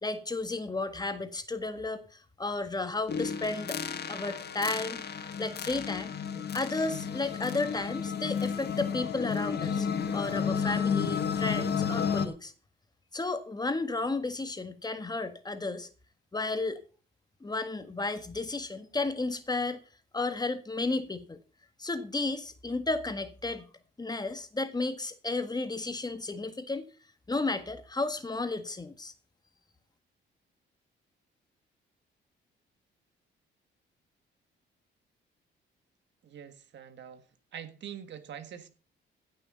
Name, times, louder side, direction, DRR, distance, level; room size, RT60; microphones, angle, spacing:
voice 1, 0.0-2.0 2.4-3.8 4.1-5.0 5.4-6.1 6.5-9.9 10.1-12.5 13.1-15.9 16.3-16.8 17.4-19.8 20.1-21.4 21.8-23.7 24.0-26.9 27.3-29.1, left 3 dB, 20° left, 1.6 m, -33 dB
sound 1, 3.1-12.3, left 7 dB, 55° left, 1.6 m, -32 dB
voice 2, 36.2-37.2 37.5-38.7, right 9 dB, 65° right, 1.7 m, -44 dB
16.0 x 6.7 x 5.4 m
cardioid pair, 90°, 20 cm